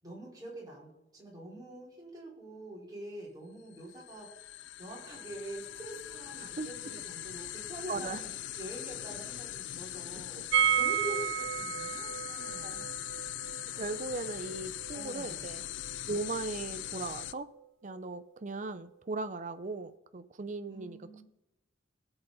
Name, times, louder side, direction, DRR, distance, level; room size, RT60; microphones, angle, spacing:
voice 1, 0.0-8.3 8.6-10.4 10.7-13.0 13.7-14.0 14.9-15.6 20.7-21.2, right 1 dB, 20° right, -4 dB, 4.8 m, -45 dB
sound 1, 3.7-17.3, left 13 dB, 85° left, 0.4 m, -41 dB
voice 2, 7.9-8.2 10.4-10.5 12.6-12.9 13.7-15.6 16.1-17.5 17.8-21.0, right 3 dB, 45° right, 11 dB, 0.6 m, -38 dB
sound 2, 10.5-16.3 16.5-16.6 16.9-17.0, right 9 dB, 85° right, 0.4 m, -33 dB
19.0 x 8.0 x 4.1 m, 0.90 s
head